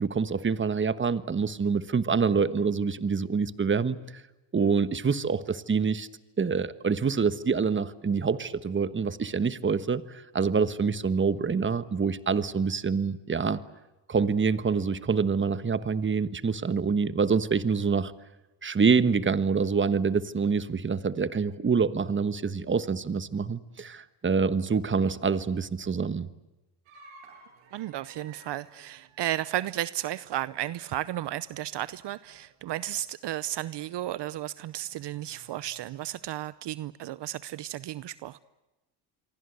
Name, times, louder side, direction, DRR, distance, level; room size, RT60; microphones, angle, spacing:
voice 1, 0.0-4.0 4.5-6.1 6.4-13.6 14.1-18.1 18.6-26.3, right 5 dB, 25° right, 14 dB, 1.3 m, -26 dB
sound 1, 26.8-31.9 32.2-32.6 32.9-33.0 33.6-33.7 34.7-36.3, right 3 dB, 90° right, 7.7 m, -56 dB
voice 2, 27.7-38.4, right 13 dB, 60° right, 17 dB, 0.8 m, -33 dB
27.5 x 23.5 x 8.0 m, 1.1 s
cardioid pair, 90°, 47 cm